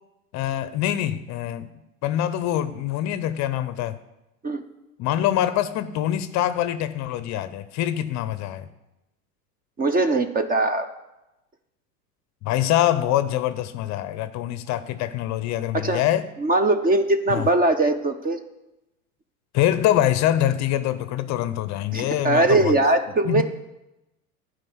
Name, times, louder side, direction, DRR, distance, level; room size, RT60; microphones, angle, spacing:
voice 1, 0.3-1.7 2.0-4.0 5.0-8.7 12.4-16.3 17.3-17.5 19.5-22.7 23.2-23.4, left 12 dB, 35° left, 0.6 m, -24 dB
voice 2, 9.8-10.9 15.7-16.0 16.4-18.4 21.9-23.4, right 2 dB, 20° right, 0.6 m, -21 dB
12.0 x 5.0 x 7.9 m
hypercardioid pair, 100°, 47 cm